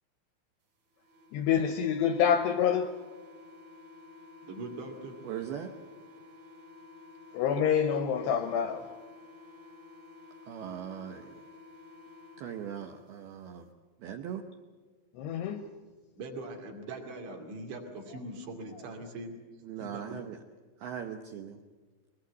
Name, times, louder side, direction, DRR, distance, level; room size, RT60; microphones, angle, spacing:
sound 1, 0.9-13.0, left 3 dB, 45° right, 2.3 m, -52 dB
voice 1, 1.3-2.9 7.3-8.9 15.1-15.6, left 8 dB, 80° left, 7 dB, 2.5 m, -27 dB
voice 2, 4.4-5.1 16.2-19.4 19.8-20.2, right 2 dB, 60° right, 2 dB, 4.7 m, -41 dB
voice 3, 5.2-5.7 10.5-11.5 12.4-13.7 14.0-14.4 19.6-20.4 20.8-21.6, right 9 dB, 85° right, 5 dB, 2.2 m, -40 dB
23.0 x 21.0 x 8.2 m, 1.3 s
omnidirectional pair, 6.0 m